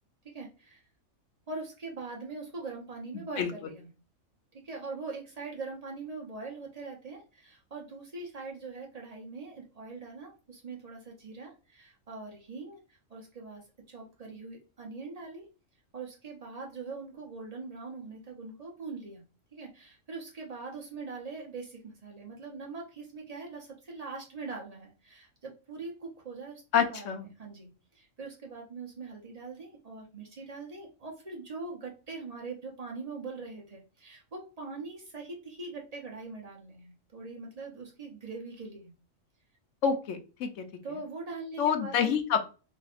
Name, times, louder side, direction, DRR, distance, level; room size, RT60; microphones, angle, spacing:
voice 1, 0.2-0.8 1.5-3.9 4.5-15.5 15.9-19.2 19.5-38.9 40.8-42.1, right 3 dB, 35° right, -1 dB, 0.8 m, -42 dB
voice 2, 26.7-27.3 39.8-40.6 41.6-42.4, left 7 dB, 70° left, 7 dB, 0.9 m, -27 dB
3.4 x 2.7 x 2.4 m, 0.33 s
omnidirectional pair, 1.4 m